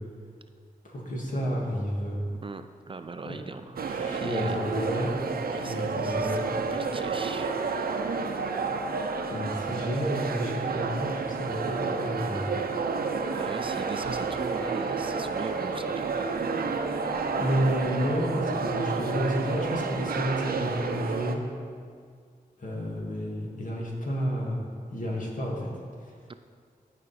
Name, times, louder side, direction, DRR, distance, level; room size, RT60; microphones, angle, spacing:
voice 1, 0.8-2.2 3.2-3.4 3.9-5.1 5.5-6.4 9.3-12.5 17.3-21.4 22.6-24.6 24.9-25.7 26.0-26.1, equal, 60° left, -2 dB, 2.1 m, -30 dB
voice 2, 2.4-4.6 5.5-7.5 13.3-16.3 26.3-26.4, right 4 dB, 35° right, 9 dB, 0.4 m, -41 dB
sound 1, 3.8-21.3, right 4 dB, 85° right, 0.7 m, -30 dB
15.5 x 5.1 x 4.3 m, 2.1 s
wide cardioid pair, 70°, 15 cm